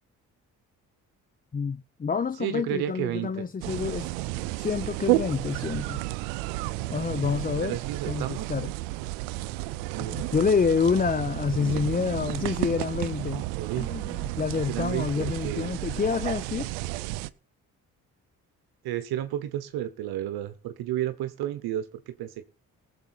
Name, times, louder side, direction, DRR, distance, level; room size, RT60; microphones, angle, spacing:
voice 1, 1.5-4.1 4.6-6.0 6.9-7.8 8.1-8.7 10.0-13.5 13.8-16.7, left 5 dB, 25° left, 0.6 m, -28 dB
voice 2, 2.4-3.3 7.6-8.5 9.9-10.3 11.5-11.8 13.6-13.9 14.7-15.7 18.8-22.4, right 12 dB, 70° right, 1.0 m, -32 dB
sound 1, 3.6-17.3, right 18 dB, 90° right, 0.6 m, -32 dB
18.5 x 7.3 x 4.4 m
hypercardioid pair, 50°, 38 cm